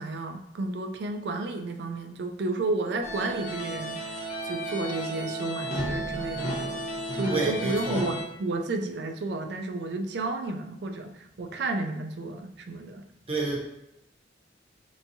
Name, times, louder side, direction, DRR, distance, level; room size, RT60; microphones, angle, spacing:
voice 1, 0.0-4.2 4.4-6.8 7.1-13.1, right 2 dB, 65° right, 6 dB, 0.4 m, -32 dB
sound 1, 3.0-8.2, right 1 dB, 40° left, 0.7 m, -33 dB
voice 2, 7.3-8.1 13.3-13.6, right 2 dB, 30° right, -2 dB, 0.8 m, -29 dB
3.3 x 2.9 x 2.6 m, 0.83 s
head